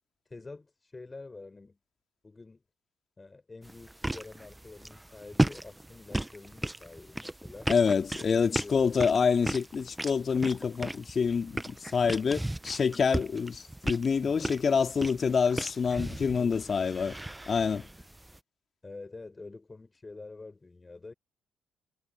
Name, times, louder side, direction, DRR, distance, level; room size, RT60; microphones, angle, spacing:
voice 1, 0.3-1.8 2.2-2.6 3.2-7.7 8.3-8.9 14.2-14.6 15.9-17.0 18.8-21.1, left 3 dB, 25° left, 7.3 m, -47 dB
sound 1, 3.6-18.4, right 1 dB, 10° right, 1.0 m, -36 dB
voice 2, 7.7-17.1 17.5-17.9, left 6 dB, 45° left, 2.8 m, -27 dB
hypercardioid pair, 50°, 0 cm